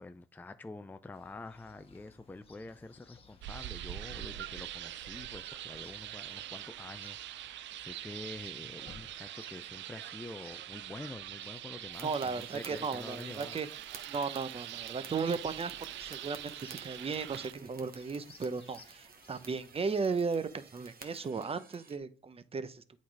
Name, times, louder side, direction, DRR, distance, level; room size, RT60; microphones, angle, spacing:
voice 1, 0.0-13.6, left 2 dB, 10° left, 0.4 m, -47 dB
Chirp tweet, 1.1-20.1, left 4 dB, 30° left, 1.6 m, -60 dB
sound 1, 3.4-17.5, right 13 dB, 65° right, 0.4 m, -44 dB
sound 2, 11.9-22.0, right 5 dB, 50° right, 1.3 m, -54 dB
voice 2, 12.0-13.7 14.1-15.7 16.0-16.5 16.8-22.8, right 5 dB, 30° right, 0.8 m, -35 dB
8.4 x 4.1 x 4.7 m
cardioid pair, 90°, 20 cm